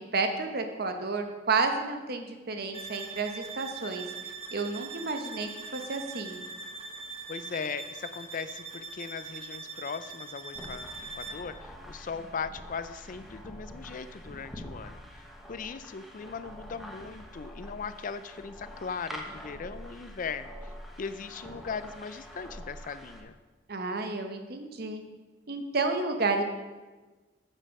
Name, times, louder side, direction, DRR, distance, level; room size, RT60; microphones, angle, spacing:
voice 1, 0.1-4.1 4.5-6.4 23.7-25.0 25.5-26.4, right 3 dB, 55° right, 6 dB, 1.0 m, -31 dB
sound 1, 2.7-11.5, right 4 dB, 30° right, 0.9 m, -42 dB
voice 2, 7.3-10.9 11.2-20.5 21.0-23.4, left 5 dB, 45° left, 12 dB, 0.4 m, -39 dB
sound 2, 10.6-23.2, equal, ahead, 1.0 m, -45 dB
8.9 x 7.3 x 5.4 m, 1.3 s
head